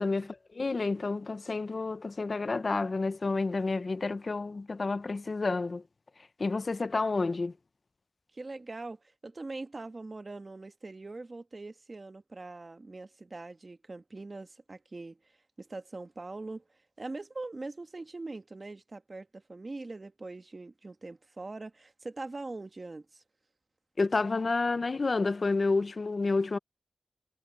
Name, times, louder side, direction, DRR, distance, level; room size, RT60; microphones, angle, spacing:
voice 1, 0.0-5.8 6.4-7.5 24.0-26.6, left 3 dB, 55° left, 0.7 m, -30 dB
voice 2, 8.3-15.2 15.6-16.6 17.0-23.2, right 3 dB, 45° right, 1.4 m, -42 dB
cardioid pair, 55°, 0 cm